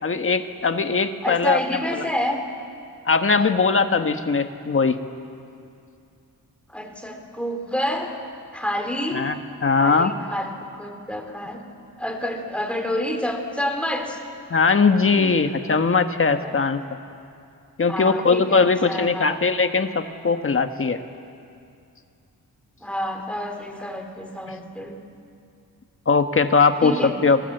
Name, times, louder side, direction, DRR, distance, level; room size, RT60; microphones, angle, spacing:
voice 1, 0.0-1.6 1.9-2.0 3.1-5.0 9.1-9.3 9.6-10.1 14.5-16.8 17.8-21.0 26.1-26.9 27.2-27.4, left 4 dB, 35° left, 7 dB, 1.3 m, -20 dB
voice 2, 1.2-2.4 6.7-8.1 8.5-9.3 9.8-11.6 12.0-14.2 16.4-16.6 17.9-19.4 22.8-25.0 26.8-27.1, left 1 dB, 5° left, 3 dB, 2.8 m, -28 dB
30.0 x 22.5 x 8.0 m, 2.5 s
wide cardioid pair, 145°, 36 cm